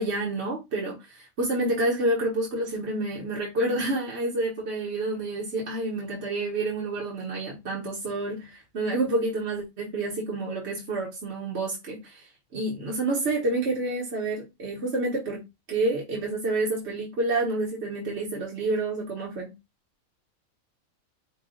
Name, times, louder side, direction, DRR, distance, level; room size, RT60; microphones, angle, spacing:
voice 1, 0.0-15.4 15.7-19.5, right 2 dB, 55° right, 1.3 m, -29 dB
5.3 x 2.3 x 3.7 m
omnidirectional pair, 1.4 m